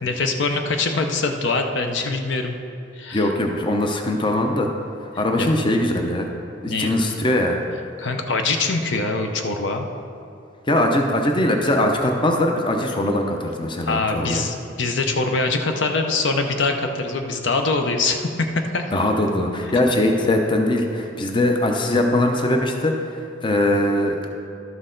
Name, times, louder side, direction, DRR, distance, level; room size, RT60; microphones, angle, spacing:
voice 1, 0.0-2.5 3.0-3.3 5.4-5.5 6.7-6.9 8.0-9.9 13.9-18.3 18.7-18.9, left 3 dB, 65° left, 4 dB, 0.7 m, -23 dB
voice 2, 3.1-4.7 5.2-6.3 6.6-7.6 10.7-14.5 18.9-24.3, left 1 dB, 25° left, 3 dB, 0.6 m, -21 dB
12.0 x 6.3 x 3.8 m, 2.7 s
head